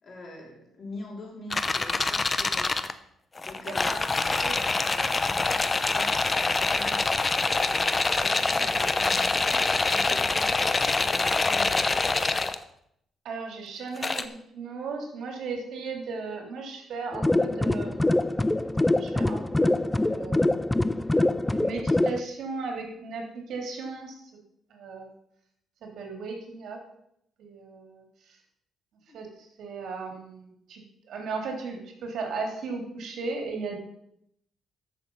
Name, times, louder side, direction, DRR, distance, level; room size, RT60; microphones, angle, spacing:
voice 1, 0.0-2.9 3.4-5.6 5.9-12.2 29.1-29.2, left 2 dB, 45° left, 0 dB, 4.0 m, -44 dB
sound 1, 1.5-2.9 3.4-12.6 14.0-14.2, left 3 dB, 25° left, 0.8 m, -25 dB
voice 2, 13.2-18.3 18.9-20.7 21.5-24.2 24.7-25.1 25.8-26.8 27.4-28.4 29.1-33.8, right 4 dB, 70° right, 2 dB, 3.4 m, -36 dB
sound 2, 17.1-22.2, left 2 dB, 10° left, 0.5 m, -24 dB
14.0 x 6.7 x 5.6 m, 0.74 s
cardioid pair, 90°, 0 cm